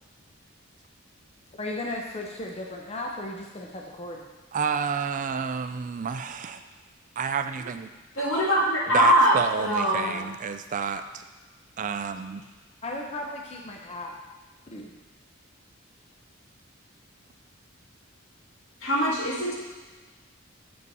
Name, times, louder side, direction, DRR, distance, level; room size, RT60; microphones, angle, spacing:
voice 1, 1.5-4.3 9.8-10.3 12.8-14.1 14.7-14.9, left 2 dB, 30° left, 0 dB, 0.7 m, -36 dB
voice 2, 4.5-6.6 7.2-7.9 8.9-11.2 11.8-12.4, right 6 dB, 40° right, 9 dB, 0.3 m, -30 dB
voice 3, 8.2-10.1 18.8-19.6, equal, 70° left, -4 dB, 2.0 m, -22 dB
6.4 x 5.5 x 5.4 m, 1.2 s
head